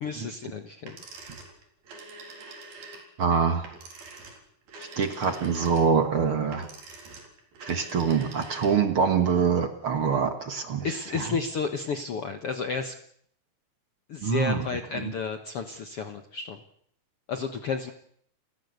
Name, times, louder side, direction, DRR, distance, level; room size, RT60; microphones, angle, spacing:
voice 1, 0.0-1.0 10.8-13.0 14.1-16.6 17.3-17.9, left 5 dB, 80° left, 8 dB, 1.3 m, -32 dB
sound 1, 0.8-9.0, right 3 dB, 70° right, 5.9 m, -45 dB
voice 2, 3.2-3.7 4.8-6.7 7.6-10.9 11.1-11.2 14.2-14.7 15.0-15.1, right 6 dB, 50° right, 8 dB, 1.6 m, -25 dB
30.0 x 16.0 x 8.1 m, 0.67 s
omnidirectional pair, 4.5 m